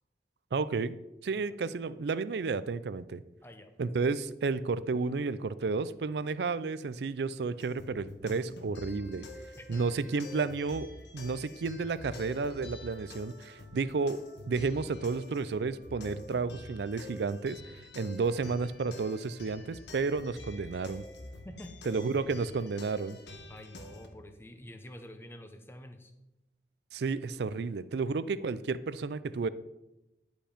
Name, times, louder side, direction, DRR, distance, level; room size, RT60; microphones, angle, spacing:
voice 1, 0.5-0.9 1.2-3.2 3.8-9.3 9.7-14.2 14.5-17.6 18.0-21.1 21.9-23.2 26.9-29.5, right 4 dB, 75° right, 16 dB, 0.4 m, -32 dB
voice 2, 3.4-3.9 9.5-9.8 21.4-21.7 23.5-26.1 28.0-28.3, left 1 dB, 15° left, 7 dB, 0.7 m, -48 dB
sound 1, 7.6-24.1, left 2 dB, 85° left, 1.2 m, -47 dB
10.5 x 5.1 x 5.0 m, 0.96 s
head